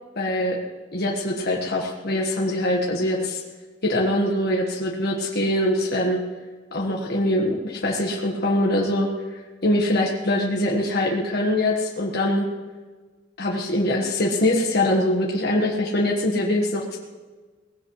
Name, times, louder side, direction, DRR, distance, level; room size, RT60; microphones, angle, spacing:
voice 1, 0.2-0.6 0.9-3.4 3.8-6.2 6.7-9.1 9.6-12.5 13.4-17.0, left 1 dB, 55° left, -2 dB, 1.6 m, -23 dB
20.0 x 16.0 x 3.3 m, 1.4 s
head